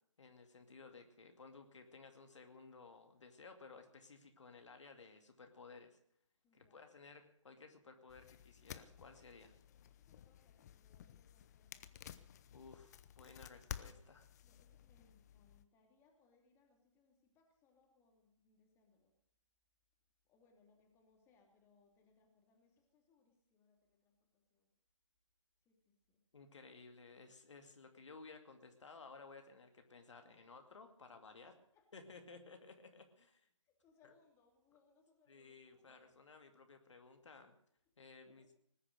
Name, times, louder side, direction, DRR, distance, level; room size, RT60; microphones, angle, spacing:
voice 1, 0.2-6.0 6.5-9.5 12.5-14.3 26.3-31.6 31.9-33.5 34.0-34.1 35.3-37.6 38.0-38.5, left 4 dB, 65° left, 6 dB, 2.3 m, -57 dB
voice 2, 6.4-6.9 9.7-12.2 14.4-19.1 20.2-24.7 25.6-26.2 30.2-30.5 31.6-32.2 33.6-36.3 37.9-38.5, left 4 dB, 15° left, 2 dB, 2.9 m, -74 dB
sound 1, 8.1-15.6, left 10 dB, 30° left, 0.9 m, -54 dB
19.5 x 9.9 x 6.7 m, 0.68 s
figure-of-eight pair, 145°, 17 cm